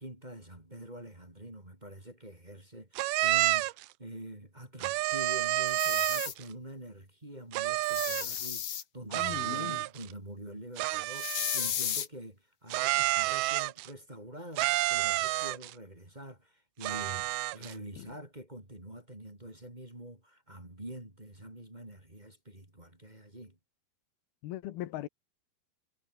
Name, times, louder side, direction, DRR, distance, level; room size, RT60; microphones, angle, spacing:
voice 1, 0.0-23.6, right 1 dB, 10° right, 3.7 m, -46 dB
sound 1, 3.0-3.9 4.8-6.4 7.5-8.4 9.1-10.1 10.8-11.9 12.7-13.9 14.6-15.7 16.8-17.7, right 19 dB, 85° right, 2.6 m, -30 dB
sound 2, 5.7-6.3 7.8-8.8 11.1-12.1, left 9 dB, 50° left, 2.5 m, -34 dB
voice 2, 9.1-9.8 18.0-18.1 24.4-25.1, left 14 dB, 90° left, 3.1 m, -39 dB
omnidirectional pair, 4.3 m